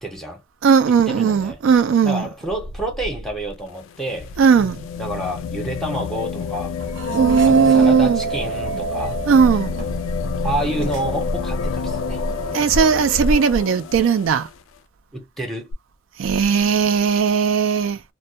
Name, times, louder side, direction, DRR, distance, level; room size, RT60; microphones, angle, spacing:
voice 1, 0.0-0.4 1.1-1.6 2.0-4.3 5.0-6.7 7.4-9.2 10.4-12.6 15.1-15.7, right 1 dB, ahead, 0.6 m, -29 dB
voice 2, 0.6-2.3 4.4-4.8 7.1-8.2 9.3-10.0 12.5-14.5 16.2-18.0, right 6 dB, 90° right, 0.4 m, -17 dB
sound 1, 3.5-14.5 15.7-15.8, left 6 dB, 90° left, 0.3 m, -29 dB
sound 2, 6.8-12.5, right 4 dB, 70° right, 0.8 m, -26 dB
2.2 x 2.1 x 2.6 m
head